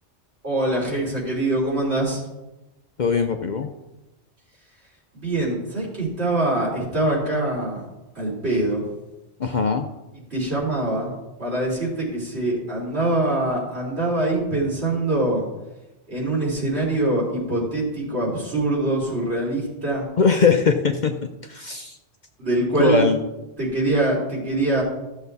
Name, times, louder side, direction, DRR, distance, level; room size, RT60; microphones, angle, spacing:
voice 1, 0.4-2.2 5.1-7.8 8.2-8.8 10.3-11.1 11.4-15.4 16.1-20.1 22.4-23.1 23.6-24.8, right 2 dB, 65° right, -4 dB, 3.8 m, -23 dB
voice 2, 3.0-3.7 9.4-9.9 20.2-21.1 21.5-22.0 22.8-23.2, left 5 dB, 50° left, 5 dB, 0.7 m, -20 dB
14.5 x 7.0 x 4.0 m, 1.0 s
omnidirectional pair, 1.2 m